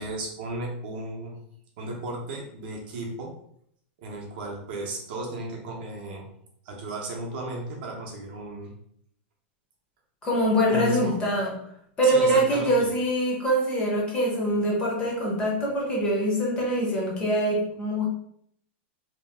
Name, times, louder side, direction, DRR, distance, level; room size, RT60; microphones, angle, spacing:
voice 1, 0.0-1.4 1.8-3.4 4.0-6.3 6.6-8.7 10.7-11.2 12.0-12.9, right 2 dB, 45° right, 0 dB, 0.7 m, -34 dB
voice 2, 10.2-11.5 12.0-18.0, equal, 15° left, -3 dB, 0.7 m, -24 dB
2.8 x 2.2 x 3.3 m, 0.68 s
supercardioid pair, 175°, 7 cm